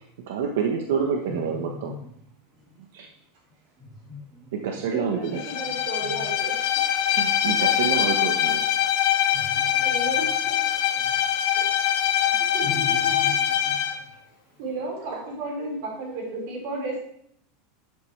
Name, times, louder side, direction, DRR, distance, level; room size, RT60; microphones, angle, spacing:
voice 1, 0.3-1.9 2.9-3.1 4.5-5.4 7.0-8.6, right 7 dB, 70° right, 2 dB, 1.1 m, -27 dB
voice 2, 1.3-2.0 3.8-4.5 9.3-9.9 12.6-12.9 13.2-13.4 13.6-13.7, left 3 dB, 20° right, -6 dB, 4.1 m, -38 dB
voice 3, 4.8-6.6 9.8-10.6 11.5-11.7 12.5-13.3 14.6-17.0, right 2 dB, 50° right, -2 dB, 4.8 m, -33 dB
Bowed string instrument, 5.3-14.0, left 10 dB, 50° left, 0.9 m, -23 dB
12.5 x 8.2 x 3.3 m, 0.68 s
supercardioid pair, 180°, 0 cm